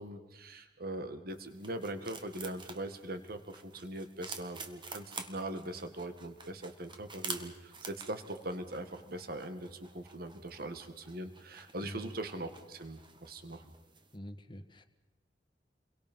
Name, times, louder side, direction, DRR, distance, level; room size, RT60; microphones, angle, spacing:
voice 1, 0.0-13.7, right 1 dB, 55° right, 8 dB, 2.1 m, -41 dB
sound 1, 1.3-14.2, right 4 dB, 25° right, 1.8 m, -49 dB
voice 2, 11.8-12.1 14.1-14.8, equal, 25° left, 7 dB, 1.5 m, -45 dB
29.5 x 23.0 x 5.6 m, 1.0 s
head